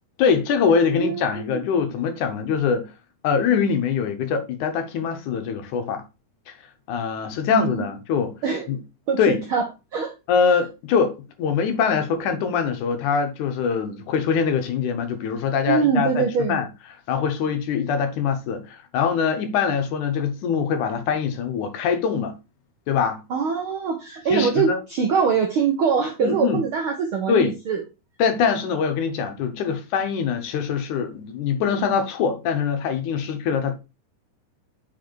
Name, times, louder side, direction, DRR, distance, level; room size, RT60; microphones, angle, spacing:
voice 1, 0.2-2.9 3.2-6.0 6.5-6.6 6.9-8.3 8.7-8.8 9.2-9.4 10.3-16.7 17.1-22.4 22.9-23.2 24.3-24.8 26.2-26.6 27.3-27.5 28.2-33.8, left 6 dB, 75° left, 2.4 m, -23 dB
voice 2, 1.0-1.4 7.5-7.8 8.4-8.7 9.1-10.1 15.7-16.6 23.3-27.8, right 6 dB, 75° right, 1.2 m, -23 dB
5.5 x 4.9 x 4.5 m
omnidirectional pair, 3.7 m